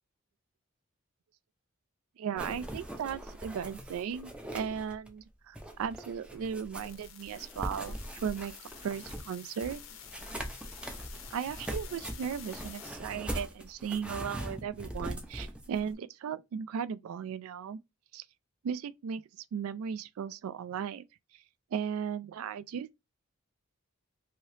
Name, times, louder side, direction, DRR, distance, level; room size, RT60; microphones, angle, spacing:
voice 1, 2.2-7.9 8.2-8.5 8.8-9.8 11.3-17.8 18.1-18.2 18.6-19.2 19.5-21.0 21.3-21.4 21.7-23.0, right 7 dB, 80° right, 0.3 m, -36 dB
sound 1, 2.4-5.2 5.6-15.9, right 1 dB, 5° right, 0.4 m, -41 dB
sound 2, 6.7-12.9, left 9 dB, 70° left, 0.6 m, -50 dB
2.8 x 2.8 x 3.2 m
head